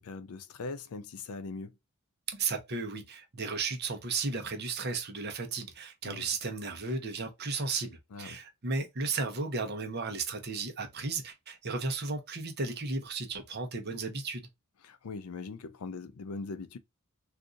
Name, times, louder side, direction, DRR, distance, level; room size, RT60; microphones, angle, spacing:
voice 1, 0.0-1.8 6.0-6.3 8.1-8.4 14.8-16.8, left 4 dB, 80° left, 0.5 m, -41 dB
voice 2, 2.3-14.5, right 4 dB, 50° right, 0.8 m, -34 dB
2.6 x 2.5 x 3.8 m
head